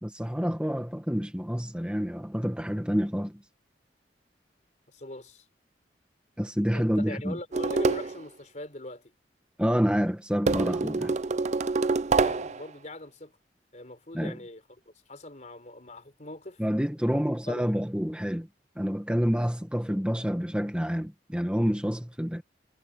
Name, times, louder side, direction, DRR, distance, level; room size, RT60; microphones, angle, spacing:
voice 1, 0.0-3.4 6.4-7.4 9.6-11.1 14.1-14.4 16.6-18.5 18.8-22.4, equal, 5° right, 1.7 m, -28 dB
voice 2, 4.9-5.4 6.7-9.1 12.1-13.3 13.7-16.6 17.1-17.6, left 1 dB, 45° left, 4.1 m, -41 dB
sound 1, 7.5-8.2 10.5-12.6, right 3 dB, 40° right, 0.5 m, -26 dB
head